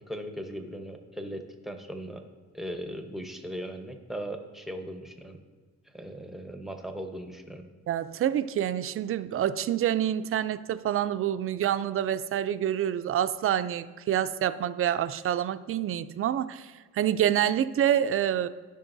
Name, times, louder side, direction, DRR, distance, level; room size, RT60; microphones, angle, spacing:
voice 1, 0.1-2.2 2.5-5.4 5.9-7.6, equal, ahead, 5 dB, 0.8 m, -38 dB
voice 2, 7.9-18.5, right 10 dB, 45° right, 12 dB, 0.4 m, -27 dB
15.5 x 5.3 x 2.6 m, 1.4 s
cardioid pair, 110°, 31 cm